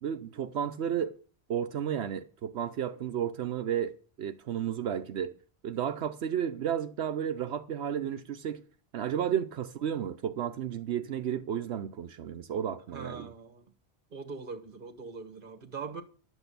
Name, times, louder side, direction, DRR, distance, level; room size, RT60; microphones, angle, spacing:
voice 1, 0.0-1.2 1.5-5.4 5.6-8.6 8.9-13.3, right 9 dB, 85° right, 1.0 m, -32 dB
voice 2, 12.9-13.7 14.1-16.0, right 4 dB, 55° right, 1.6 m, -42 dB
11.5 x 8.1 x 6.8 m
omnidirectional pair, 1.1 m